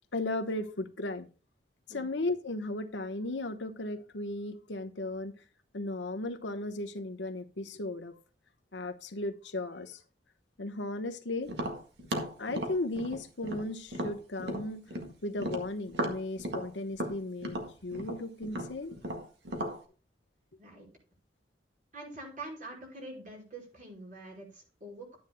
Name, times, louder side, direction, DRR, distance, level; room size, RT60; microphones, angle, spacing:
voice 1, 0.1-1.3 1.9-5.3 5.7-8.1 8.7-10.0 10.6-11.5 12.4-14.8 15.2-18.9, left 2 dB, 85° left, 1.0 m, -36 dB
Tap, 11.5-15.1 15.4-19.8, equal, 70° right, 1.7 m, -36 dB
voice 2, 21.9-25.2, right 2 dB, 50° right, 5.1 m, -45 dB
12.0 x 9.7 x 2.2 m
head